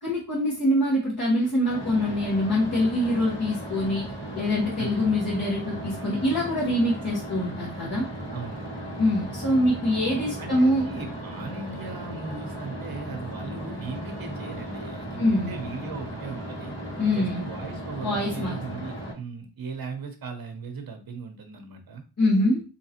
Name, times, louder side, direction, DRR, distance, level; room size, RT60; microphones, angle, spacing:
voice 1, 0.0-8.1 9.0-10.9 15.2-15.5 17.0-17.4 18.0-18.6 22.2-22.6, left 1 dB, 45° left, -7 dB, 1.2 m, -24 dB
sound 1, 1.7-19.1, right 1 dB, 25° left, 1.8 m, -36 dB
voice 2, 8.3-8.7 10.4-16.8 17.1-22.0, right 4 dB, 50° right, 6 dB, 0.8 m, -38 dB
3.8 x 2.9 x 2.8 m, 0.33 s
wide cardioid pair, 130°, 46 cm